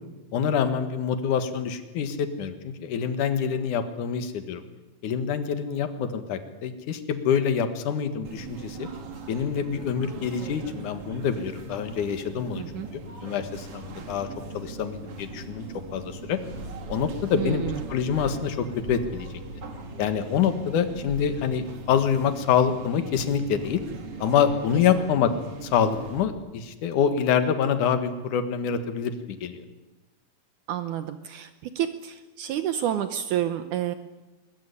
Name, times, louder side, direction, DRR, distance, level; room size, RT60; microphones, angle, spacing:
voice 1, 0.3-4.6 5.0-8.9 9.3-12.6 13.2-14.3 14.5-15.7 15.9-16.4 16.9-17.6 17.9-19.3 20.0-23.8 24.2-25.3 25.6-29.6, left 7 dB, 70° left, 9 dB, 3.1 m, -26 dB
sound 1, 8.2-26.3, right 2 dB, 45° right, 3.0 m, -40 dB
voice 2, 12.6-12.9 17.3-17.9 25.0-25.1 30.7-33.9, right 11 dB, 75° right, 10 dB, 2.3 m, -29 dB
22.0 x 20.0 x 9.9 m, 1.1 s
omnidirectional pair, 3.8 m